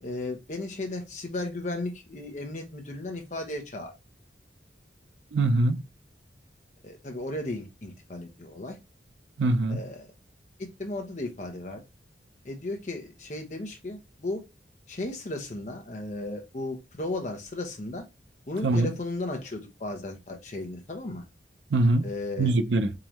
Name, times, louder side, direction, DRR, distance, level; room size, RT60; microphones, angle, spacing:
voice 1, 0.0-3.9 6.8-8.8 9.7-10.1 10.6-11.8 12.4-14.4 14.9-18.0 18.5-21.2 22.0-22.5, left 2 dB, 40° left, 0.7 m, -35 dB
voice 2, 5.3-5.8 9.4-9.8 18.6-18.9 21.7-22.1 22.4-22.9, right 2 dB, 90° right, 0.5 m, -23 dB
3.8 x 3.1 x 2.9 m
head